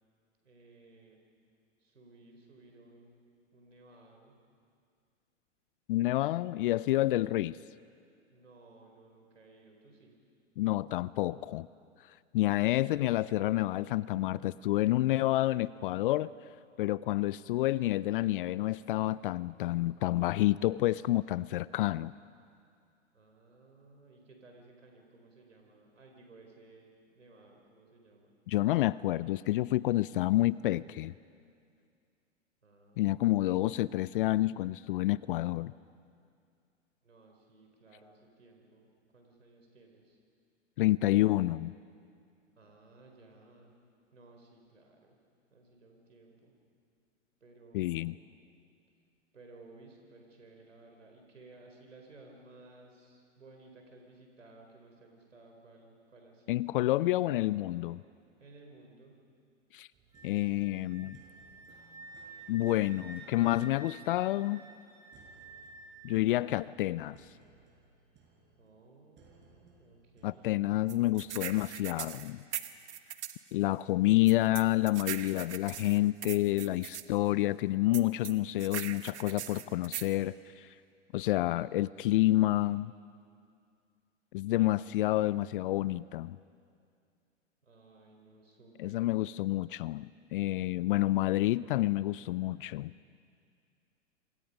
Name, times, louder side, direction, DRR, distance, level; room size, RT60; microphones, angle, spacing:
voice 1, 0.4-1.2 1.8-3.2 3.5-4.4 8.3-10.2 23.1-28.3 32.6-33.5 37.0-40.2 42.5-43.7 44.1-45.2 45.5-46.5 47.4-48.3 49.3-56.7 58.4-59.2 68.6-70.5 87.6-89.0, right 2 dB, 85° right, 2 dB, 4.1 m, -57 dB
voice 2, 5.9-7.6 10.6-11.7 12.3-16.3 16.8-22.1 28.5-31.1 33.0-35.7 40.8-41.7 47.7-48.1 56.5-58.0 59.7-59.9 60.2-61.2 62.5-64.6 66.0-67.2 70.2-72.4 73.5-80.7 81.1-82.9 84.3-86.4 88.8-92.9, left 16 dB, 45° left, 19 dB, 0.5 m, -29 dB
sound 1, 59.9-72.8, right 4 dB, 30° right, 5.6 m, -63 dB
Wind instrument woodwind instrument, 60.1-66.5, right 2 dB, 10° right, 5.0 m, -51 dB
sound 2, 70.9-73.4 74.3-77.0 77.9-80.1, right 11 dB, 65° right, 1.4 m, -40 dB
27.5 x 25.5 x 5.3 m, 2.3 s
hypercardioid pair, 110°, 37 cm